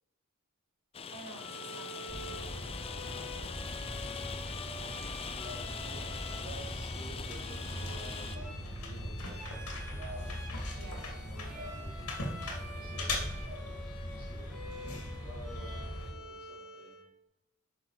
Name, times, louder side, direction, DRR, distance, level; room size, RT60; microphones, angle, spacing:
Rain, 0.9-8.4, left 6 dB, 25° left, 0.4 m, -42 dB
voice 1, 1.1-4.2 10.8-11.1, right 2 dB, 80° right, 0 dB, 2.8 m, -52 dB
Bowed string instrument, 1.3-17.1, left 1 dB, ahead, 2.3 m, -48 dB
sound 1, 2.1-16.1, left 1 dB, 85° left, 2.3 m, -40 dB
voice 2, 5.3-9.4 9.7-10.4 10.7-11.9 12.5-13.8 14.1-17.0, right 1 dB, 25° right, -5 dB, 3.6 m, -50 dB
10.5 x 6.2 x 4.7 m, 0.84 s
head